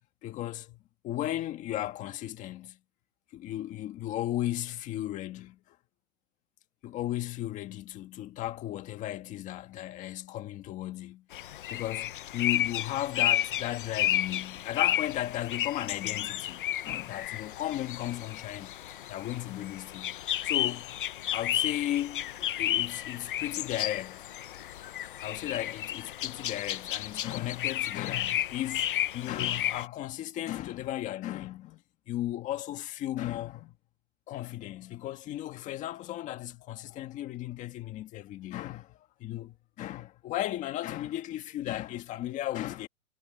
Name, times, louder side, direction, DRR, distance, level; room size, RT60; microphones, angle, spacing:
voice 1, 0.2-2.8 3.3-5.8 6.8-18.8 19.1-20.2 20.4-21.0 21.3-24.3 25.2-33.7 34.3-42.9, left 13 dB, 20° left, 1.6 m, -35 dB
sound 1, 11.3-29.9, left 12 dB, 40° left, 0.4 m, -32 dB
hypercardioid pair, 160°, 42 cm